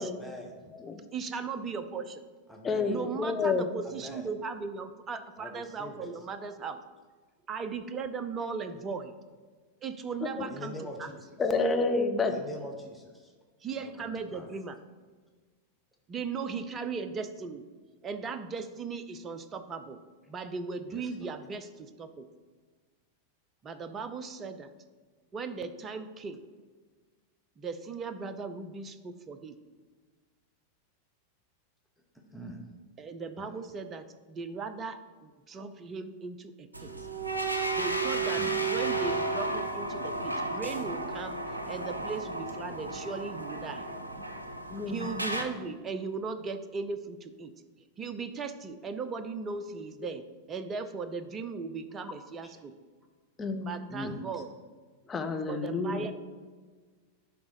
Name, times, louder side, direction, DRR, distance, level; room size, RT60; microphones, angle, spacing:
voice 1, 0.0-0.7 2.5-2.9 3.8-4.3 5.4-6.1 10.5-11.2 12.3-13.3 13.8-14.5 20.9-21.3 32.3-32.6 33.4-33.5 38.4-38.5 53.9-54.2, left 1 dB, ahead, -1 dB, 1.0 m, -43 dB
voice 2, 1.1-2.2 2.9-6.8 7.5-9.1 9.8-11.1 13.6-14.8 16.1-17.7 18.0-20.0 20.3-22.3 23.6-24.7 25.3-26.4 27.6-29.6 33.0-36.9 37.7-43.9 44.9-47.5 48.0-52.8 53.6-54.5 55.5-56.1, right 5 dB, 25° right, 10 dB, 0.6 m, -37 dB
voice 3, 2.6-3.6 10.4-10.5 11.4-12.3 44.7-45.1 53.4-53.7 55.1-56.1, left 3 dB, 20° left, 5 dB, 0.8 m, -29 dB
sound 1, 36.7-45.4, right 3 dB, 80° right, 0.7 m, -33 dB
10.5 x 3.6 x 5.0 m, 1.4 s
figure-of-eight pair, 90°, 0 cm